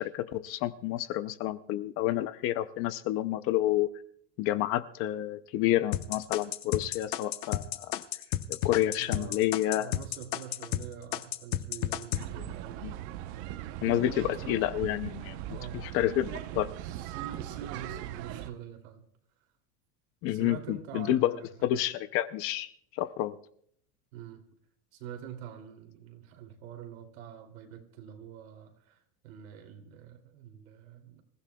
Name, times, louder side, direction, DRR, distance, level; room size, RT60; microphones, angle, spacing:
voice 1, 0.0-3.9 4.4-7.9 8.5-9.9 12.4-12.5 12.8-12.9 13.8-15.4 15.7-16.7 20.2-21.3 21.6-23.4, left 13 dB, 35° left, 0.5 m, -29 dB
sound 1, 5.9-10.8 11.1-12.2, left 13 dB, 50° left, 1.0 m, -31 dB
voice 2, 9.0-9.4 9.8-12.9 13.8-14.6 15.5-15.8 16.8-19.1 20.3-21.5 24.1-24.5 24.9-31.2, right 9 dB, 85° right, 2.8 m, -45 dB
sound 2, 12.1-18.5, right 13 dB, 50° right, 0.9 m, -39 dB
26.5 x 15.0 x 2.3 m
supercardioid pair, 165°, 40 cm